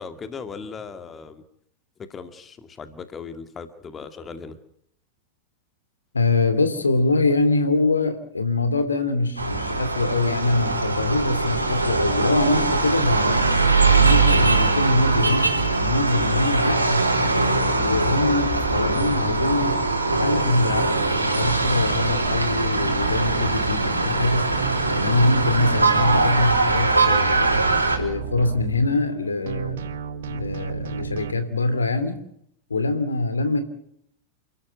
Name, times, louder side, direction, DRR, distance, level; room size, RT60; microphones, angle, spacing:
voice 1, 0.0-1.4 2.1-4.6 17.7-18.0, left 5 dB, 20° left, 10 dB, 2.1 m, -38 dB
voice 2, 6.1-13.4 13.9-17.1 17.8-19.8 20.1-24.6 24.9-27.6 28.0-29.8 30.3-32.2 32.7-33.6, left 2 dB, 75° left, 10 dB, 2.9 m, -23 dB
sound 1, 9.4-28.0, right 3 dB, 85° right, 4.0 m, -21 dB
sound 2, 21.4-24.2 24.5-29.2 29.5-31.3, right 8 dB, 60° right, 1.3 m, -33 dB
29.0 x 13.5 x 9.2 m, 0.72 s
figure-of-eight pair, 90°, 0 cm